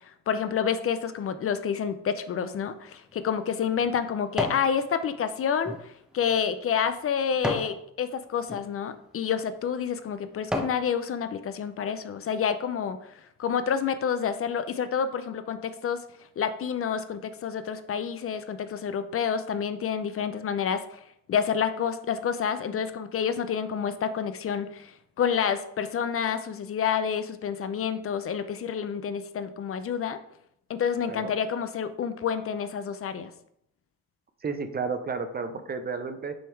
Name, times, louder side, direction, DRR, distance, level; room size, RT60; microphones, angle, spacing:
voice 1, 0.3-16.0 16.4-30.2 30.7-33.3, left 7 dB, 50° left, 11 dB, 0.5 m, -29 dB
sound 1, 2.9-4.7 5.2-7.8 8.4-8.6 9.3-9.5 10.0-10.9 11.3-11.4, equal, ahead, 0.8 m, -35 dB
voice 2, 34.4-36.3, right 4 dB, 30° right, 9 dB, 0.6 m, -32 dB
6.2 x 3.5 x 4.6 m, 0.72 s
cardioid pair, 90°, 30 cm